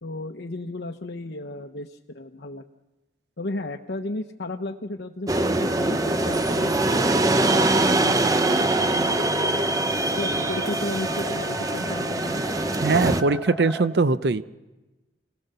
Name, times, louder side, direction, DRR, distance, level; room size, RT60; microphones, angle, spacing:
voice 1, 0.0-2.6 3.4-7.0 7.4-9.6 10.2-12.4, left 2 dB, 75° left, 3 dB, 0.9 m, -34 dB
sound 1, 5.3-13.2, right 2 dB, 20° right, 0.7 m, -23 dB
sound 2, 5.6-13.9, right 1 dB, 5° left, 1.3 m, -35 dB
voice 2, 12.8-14.4, right 3 dB, 70° right, 14 dB, 0.6 m, -21 dB
26.5 x 17.5 x 6.8 m, 1.1 s
head